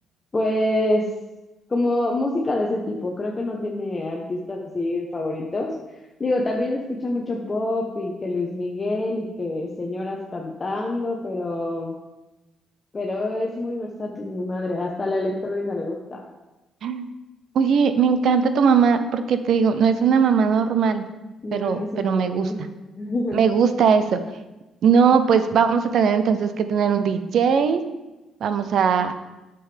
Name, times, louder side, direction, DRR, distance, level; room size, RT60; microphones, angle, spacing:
voice 1, 0.3-1.1 1.7-5.7 6.2-12.0 12.9-16.2 21.4-22.7 23.0-23.4, left 2 dB, 30° left, -1 dB, 1.0 m, -26 dB
voice 2, 17.5-21.0 21.5-22.5 23.3-24.2 24.8-27.8 28.4-29.1, right 6 dB, 70° right, 10 dB, 0.7 m, -19 dB
9.7 x 6.9 x 3.5 m, 1.1 s
cardioid pair, 90°, 0 cm